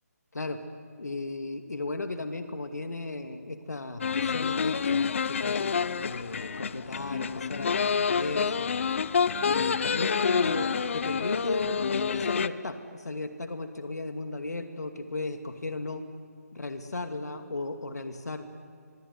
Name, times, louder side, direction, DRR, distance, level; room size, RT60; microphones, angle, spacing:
voice 1, 1.0-8.7 9.5-16.0 16.5-18.5, left 2 dB, 75° left, 7 dB, 2.4 m, -35 dB
sound 1, 4.0-12.5, left 6 dB, 50° left, 0.8 m, -28 dB
24.5 x 23.5 x 9.5 m, 2.2 s
figure-of-eight pair, 150°, 9 cm